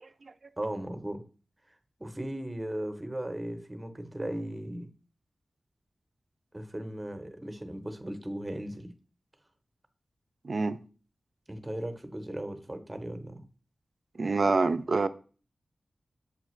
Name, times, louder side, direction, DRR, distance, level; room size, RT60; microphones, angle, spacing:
voice 1, 0.6-1.2 2.0-4.9 6.5-8.9 11.5-13.5, right 1 dB, 20° right, 0.7 m, -37 dB
voice 2, 10.4-10.8 14.2-15.1, right 3 dB, 60° right, 0.3 m, -26 dB
6.7 x 2.4 x 3.0 m
cardioid pair, 45°, 0 cm